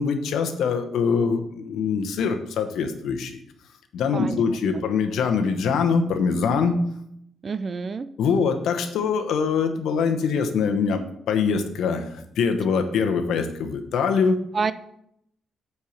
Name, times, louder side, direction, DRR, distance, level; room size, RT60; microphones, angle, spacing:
voice 1, 0.0-3.4 3.9-6.8 8.2-11.0 11.3-12.0 12.4-14.4, left 5 dB, 75° left, 6 dB, 1.0 m, -23 dB
voice 2, 4.1-4.4 4.7-4.8 7.4-8.1 14.5-14.7, right 5 dB, 35° right, 14 dB, 0.4 m, -28 dB
8.6 x 4.7 x 5.1 m, 0.74 s
cardioid pair, 130°, 0 cm